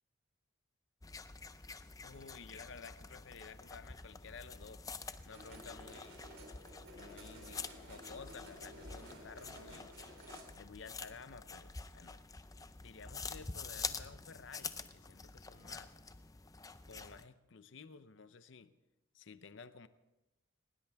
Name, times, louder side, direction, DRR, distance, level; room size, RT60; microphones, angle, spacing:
sound 1, 1.0-17.2, left 4 dB, 15° left, 0.5 m, -47 dB
voice 1, 2.0-4.8 5.3-6.2 6.9-10.0 10.6-12.2 12.8-15.9 16.8-18.7 19.1-19.9, left 5 dB, 60° left, 13 dB, 0.6 m, -53 dB
sound 2, 5.3-10.4, equal, 70° right, 3.6 m, -54 dB
19.0 x 19.0 x 3.5 m, 0.98 s
head